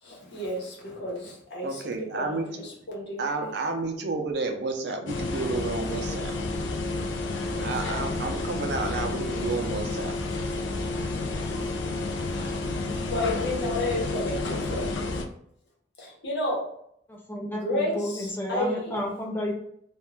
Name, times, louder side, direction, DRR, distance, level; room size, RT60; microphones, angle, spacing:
voice 1, 0.0-3.5 7.5-7.8 10.5-10.6 11.9-12.1 12.9-15.0 16.0-16.7 17.5-19.0, left 1 dB, 60° left, -3 dB, 0.9 m, -32 dB
voice 2, 1.6-2.5 3.2-6.3 7.6-10.1, right 3 dB, 60° right, 4 dB, 0.5 m, -31 dB
sound 1, 5.1-15.2, left 2 dB, 80° left, 0.4 m, -30 dB
voice 3, 17.1-19.5, left 1 dB, 10° left, 0 dB, 0.5 m, -31 dB
2.4 x 2.2 x 3.0 m, 0.71 s
head